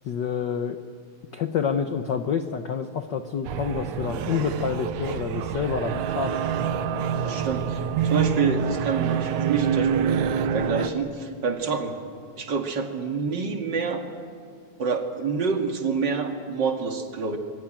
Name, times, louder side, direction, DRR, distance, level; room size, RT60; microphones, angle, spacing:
voice 1, 0.0-0.8 1.3-6.4, left 7 dB, 90° left, 8 dB, 0.9 m, -28 dB
sound 1, 3.5-10.9, right 7 dB, 85° right, 2.5 m, -26 dB
voice 2, 7.2-12.0 12.4-14.1 14.8-17.4, right 5 dB, 40° right, 3 dB, 2.5 m, -27 dB
26.5 x 22.0 x 8.9 m, 2.2 s
omnidirectional pair, 3.3 m